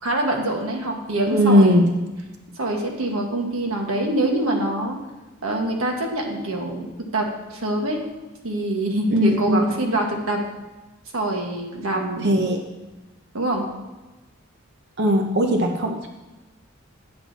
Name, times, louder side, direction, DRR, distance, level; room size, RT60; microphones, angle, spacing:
voice 1, 0.0-1.7 2.6-5.0 5.4-6.9 7.1-8.0 8.4-10.4 11.1-12.3 13.3-13.7, right 1 dB, 85° right, 1 dB, 1.4 m, -25 dB
voice 2, 1.3-1.9 9.1-9.9 12.2-12.6 15.0-16.1, equal, 55° right, 3 dB, 0.7 m, -19 dB
8.6 x 7.3 x 4.1 m, 1.1 s
head